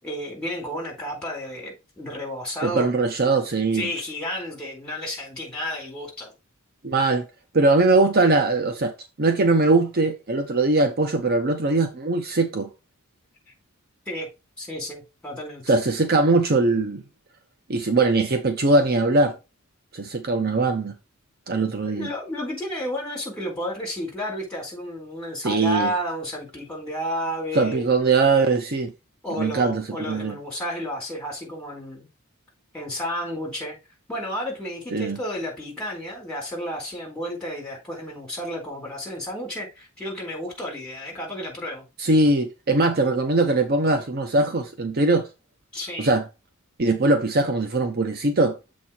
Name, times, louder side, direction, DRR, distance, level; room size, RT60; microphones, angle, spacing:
voice 1, 0.0-2.9 3.7-6.3 14.1-14.3 14.6-15.7 21.8-27.9 29.2-32.1 32.7-33.8 34.1-41.8 45.7-46.1, equal, 5° left, 4.2 m, -32 dB
voice 2, 2.6-3.9 6.8-7.3 7.5-12.7 15.7-17.0 17.7-19.3 19.9-20.9 21.5-22.1 25.4-25.9 27.5-28.9 29.4-30.4 34.9-35.2 42.0-45.3 46.0-46.3 46.8-48.6, right 3 dB, 45° right, 0.8 m, -21 dB
7.3 x 4.2 x 4.4 m
head